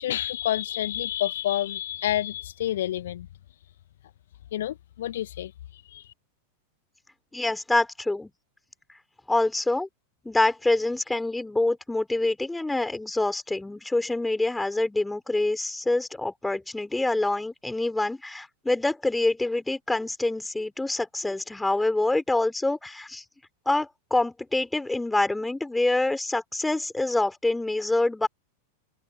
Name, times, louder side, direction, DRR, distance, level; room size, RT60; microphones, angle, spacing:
voice 1, 0.0-3.3 4.5-6.0, left 12 dB, 60° left, 1.5 m, -29 dB
voice 2, 7.3-8.3 9.3-9.9 10.2-23.2 23.7-28.3, left 2 dB, 5° left, 5.4 m, -26 dB
open air
figure-of-eight pair, 90°, 0 cm